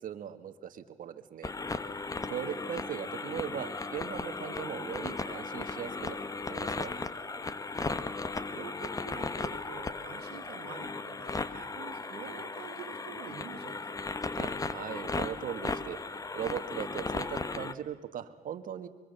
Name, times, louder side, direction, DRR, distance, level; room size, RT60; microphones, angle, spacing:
voice 1, 0.0-1.5 2.3-6.2 6.5-6.9 14.3-18.9, right 9 dB, 55° right, 10 dB, 1.6 m, -39 dB
sound 1, 1.4-17.7, left 3 dB, 20° left, 1.0 m, -36 dB
voice 2, 2.2-2.5 8.5-14.0, right 8 dB, 75° right, 7 dB, 2.2 m, -47 dB
24.0 x 23.5 x 6.8 m, 1.5 s
cardioid pair, 110°, 17 cm